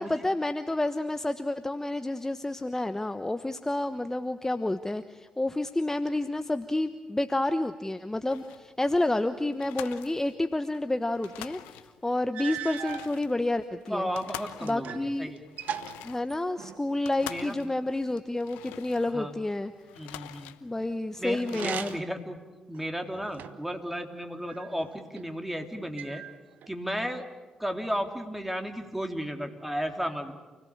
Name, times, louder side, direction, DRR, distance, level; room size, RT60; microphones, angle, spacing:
voice 1, 0.0-14.1 14.6-15.3 16.0-19.7 20.6-22.0, left 2 dB, 15° left, 9 dB, 1.1 m, -29 dB
sound 1, 8.3-8.7 9.1-9.2 9.5-10.8 11.1-12.1 12.6-19.4 19.7-20.9 21.2-22.0, left 14 dB, 85° left, 0.9 m, -46 dB
sound 2, 11.8-11.9 12.3-13.1 13.9-15.1 15.4-16.9 21.4-22.2 22.7-23.7 24.5-25.3 26.0-26.7, right 9 dB, 70° right, 1.0 m, -39 dB
voice 2, 13.9-15.4 17.2-17.5 19.1-19.3 20.0-20.5 21.2-22.4 22.7-26.2 26.7-27.2 27.6-30.3, equal, 5° right, 5 dB, 3.4 m, -34 dB
29.0 x 17.5 x 8.8 m, 1.2 s
hypercardioid pair, 45°, 3 cm